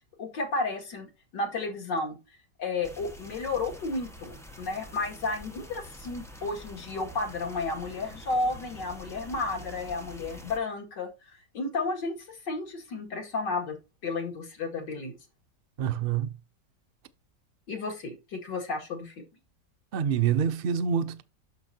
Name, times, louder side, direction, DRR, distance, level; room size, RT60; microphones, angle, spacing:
voice 1, 0.2-2.2 2.6-13.8 14.0-15.1 17.7-19.2, left 3 dB, 85° left, 2.8 m, -32 dB
sound 1, 2.8-10.6, equal, ahead, 1.1 m, -46 dB
voice 2, 15.8-16.3 19.9-21.2, right 8 dB, 90° right, 0.4 m, -26 dB
9.6 x 6.5 x 2.7 m
omnidirectional pair, 1.9 m